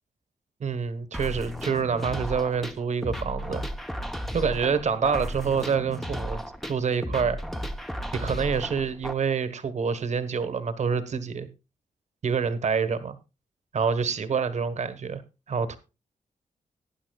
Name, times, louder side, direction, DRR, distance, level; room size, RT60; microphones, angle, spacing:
voice 1, 0.6-3.6 4.3-6.4 6.7-7.4 8.1-11.5 12.2-13.2 13.7-15.2 15.5-15.8, right 6 dB, 55° right, 1.3 m, -27 dB
sound 1, 1.1-9.1, equal, ahead, 0.8 m, -34 dB
18.5 x 10.0 x 2.3 m
wide cardioid pair, 150°, 14 cm